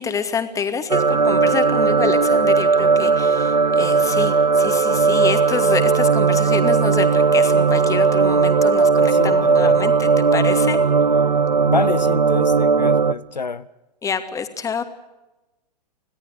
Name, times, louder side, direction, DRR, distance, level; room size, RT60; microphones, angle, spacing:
voice 1, 0.0-10.8 14.0-14.8, left 6 dB, 15° left, 8 dB, 2.5 m, -27 dB
sound 1, 0.9-13.1, right 5 dB, 85° right, 1.0 m, -17 dB
voice 2, 9.0-9.8 11.6-13.7, left 5 dB, 85° left, 14 dB, 0.9 m, -27 dB
26.5 x 17.5 x 8.1 m, 1.0 s
figure-of-eight pair, 110°, 21 cm